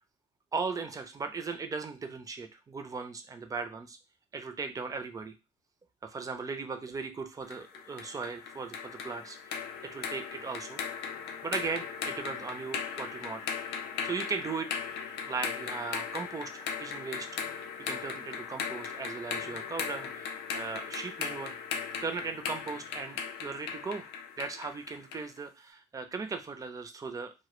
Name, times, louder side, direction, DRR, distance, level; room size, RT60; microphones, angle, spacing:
voice 1, 0.5-4.0 4.3-5.3 6.0-10.8 11.4-13.5 14.0-14.8 15.2-21.6 22.0-24.1 24.4-27.3, right 4 dB, 20° right, 7 dB, 0.4 m, -38 dB
sound 1, 7.5-25.3, left 7 dB, 80° left, 0.4 m, -38 dB
2.1 x 2.0 x 3.0 m, 0.27 s
cardioid pair, 110°, 17 cm